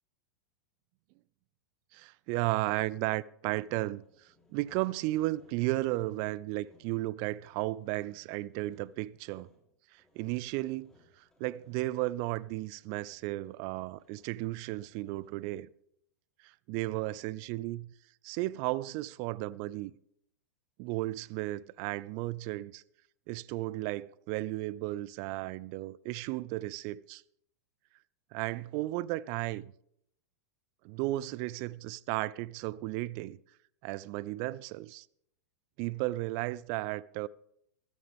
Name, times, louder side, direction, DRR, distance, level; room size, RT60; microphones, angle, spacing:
voice 1, 1.9-9.5 9.9-10.9 11.2-15.7 16.4-17.9 18.2-19.9 20.8-22.8 23.3-27.2 28.3-29.7 30.8-33.4 33.8-35.1 35.8-37.3, right 18 dB, 45° right, 0.4 m, -34 dB
Sawing, 3.7-15.8, left 2 dB, 5° left, 3.5 m, -67 dB
15.5 x 13.0 x 3.5 m
figure-of-eight pair, 95°, 9 cm